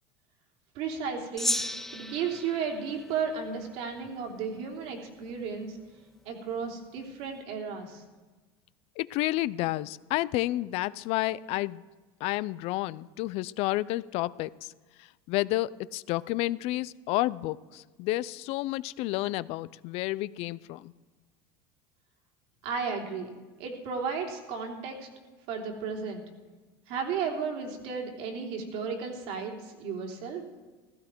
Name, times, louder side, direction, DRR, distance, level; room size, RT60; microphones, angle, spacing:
voice 1, 0.7-1.5 1.9-5.8 6.2-8.0 22.6-23.3 23.6-25.1 25.5-26.2 26.9-30.5, right 6 dB, 65° right, 2 dB, 3.3 m, -34 dB
Gong, 1.4-4.0, left 1 dB, 5° left, 0.6 m, -34 dB
voice 2, 9.0-11.9 12.2-14.7 15.0-20.9, left 17 dB, 60° left, 19 dB, 0.5 m, -30 dB
16.0 x 14.5 x 4.6 m, 1.3 s
supercardioid pair, 95°, 12 cm